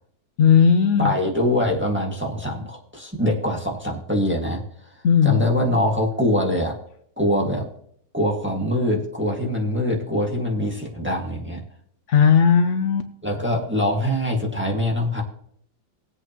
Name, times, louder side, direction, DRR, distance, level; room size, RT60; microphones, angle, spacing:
voice 1, 0.4-1.1 5.0-5.4 12.1-13.1, left 7 dB, 75° left, 8 dB, 0.6 m, -16 dB
voice 2, 1.0-4.6 5.2-6.7 7.2-7.7 8.1-11.6 13.2-15.2, left 1 dB, 5° right, -2 dB, 1.6 m, -23 dB
20.0 x 8.1 x 3.0 m, 0.67 s
omnidirectional pair, 2.0 m